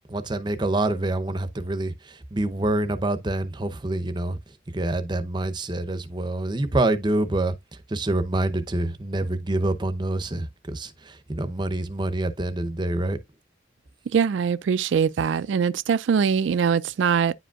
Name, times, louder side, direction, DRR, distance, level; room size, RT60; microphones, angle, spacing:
voice 1, 0.1-4.4 4.7-7.5 7.9-13.2, right 2 dB, 25° right, 0.7 m, -26 dB
voice 2, 14.1-17.3, right 6 dB, 80° right, 0.3 m, -22 dB
9.8 x 5.0 x 2.3 m
head